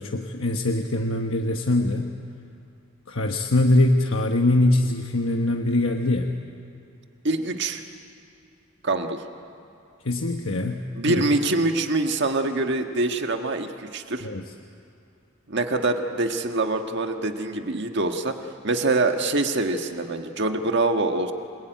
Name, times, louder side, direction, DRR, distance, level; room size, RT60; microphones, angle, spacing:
voice 1, 0.0-2.1 3.1-6.3 10.0-11.2 14.2-14.4, left 1 dB, 80° left, 3 dB, 1.3 m, -23 dB
voice 2, 7.2-7.8 8.8-9.2 10.9-14.3 15.5-18.3 18.6-21.3, right 2 dB, 60° right, 5 dB, 1.6 m, -24 dB
28.0 x 21.0 x 9.3 m, 2.6 s
head